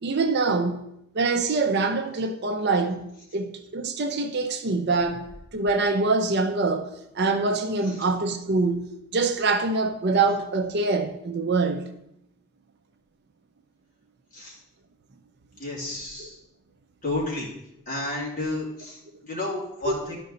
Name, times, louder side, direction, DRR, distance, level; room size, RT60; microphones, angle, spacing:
voice 1, 0.0-0.9 1.1-11.9 16.2-16.3 19.8-19.9, right 3 dB, 50° right, 0.5 m, -25 dB
voice 2, 15.6-16.3 17.0-17.5 17.9-20.2, left 2 dB, 35° left, 2.6 m, -31 dB
11.5 x 5.3 x 3.9 m
head